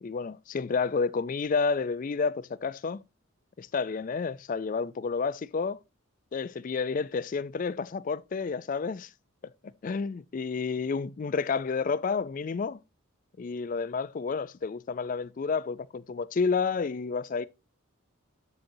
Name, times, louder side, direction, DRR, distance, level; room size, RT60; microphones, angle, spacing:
voice 1, 0.0-3.0 3.6-5.8 6.3-9.1 9.8-12.8 13.4-17.5, left 5 dB, 40° left, 0.3 m, -30 dB
7.7 x 7.4 x 2.7 m
head